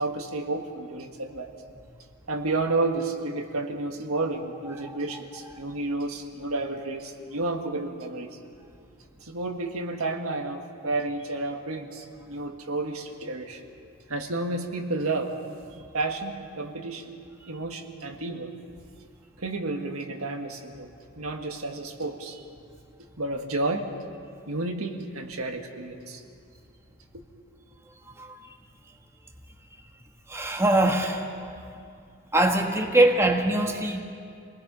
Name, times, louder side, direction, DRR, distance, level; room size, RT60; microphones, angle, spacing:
voice 1, 0.0-1.5 2.3-8.4 9.2-13.6 14.1-15.3 15.7-17.1 17.5-18.5 19.4-20.9 21.2-22.4 23.2-23.9 24.5-26.2, right 2 dB, 85° right, 3 dB, 1.7 m, -31 dB
voice 2, 30.3-31.6 32.3-34.0, right 1 dB, 15° right, 3 dB, 1.4 m, -23 dB
28.0 x 19.5 x 5.6 m, 2.4 s
head